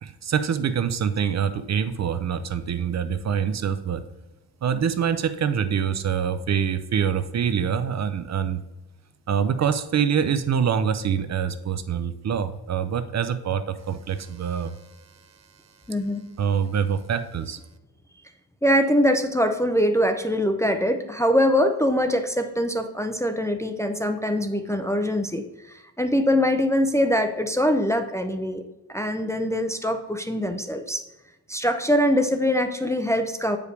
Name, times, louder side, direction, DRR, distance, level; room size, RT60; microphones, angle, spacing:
voice 1, 0.0-4.0 4.6-8.6 9.3-15.3 16.4-17.6, right 7 dB, 45° right, 11 dB, 0.5 m, -25 dB
voice 2, 15.9-16.2 18.6-28.6 28.9-31.0 31.5-33.6, equal, 10° left, 6 dB, 0.4 m, -23 dB
8.1 x 5.0 x 3.3 m, 1.0 s
cardioid pair, 120°, 39 cm